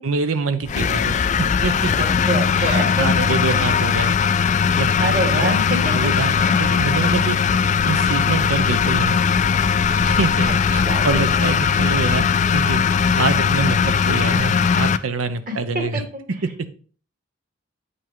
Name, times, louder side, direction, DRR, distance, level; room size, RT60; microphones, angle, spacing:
voice 1, 0.0-1.9 2.5-4.1 4.8-4.9 5.1-5.6 5.8-7.4 7.8-9.4 10.0-12.3 12.5-16.0 16.4-16.7, right 4 dB, 85° right, 11 dB, 0.8 m, -25 dB
sound 1, 0.6-14.5, equal, 20° right, 1.1 m, -38 dB
sound 2, 0.7-15.0, left 6 dB, 35° left, 0.3 m, -19 dB
voice 2, 2.0-3.6 5.0-6.1 6.4-6.6 10.7-11.2 15.5-16.0, right 1 dB, 40° right, 2 dB, 2.0 m, -26 dB
8.1 x 5.5 x 3.7 m, 0.41 s
head